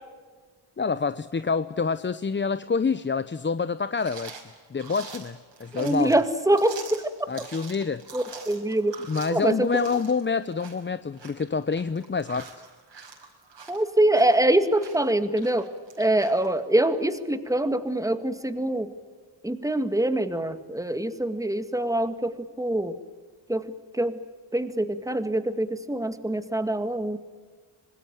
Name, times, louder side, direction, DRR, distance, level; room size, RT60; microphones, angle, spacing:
voice 1, 0.8-6.1 7.3-8.0 9.1-12.5, left 5 dB, 25° left, 14 dB, 0.7 m, -27 dB
sound 1, 3.9-16.5, right 5 dB, 60° right, 5.5 m, -45 dB
voice 2, 5.7-7.3 8.1-9.0 9.3-9.7 13.7-15.7 16.0-18.9 19.4-23.0 23.5-23.7 23.9-24.2 24.5-27.2, right 1 dB, 5° right, 10 dB, 2.0 m, -24 dB
26.0 x 20.0 x 9.3 m, 1.5 s
cardioid pair, 85°, 47 cm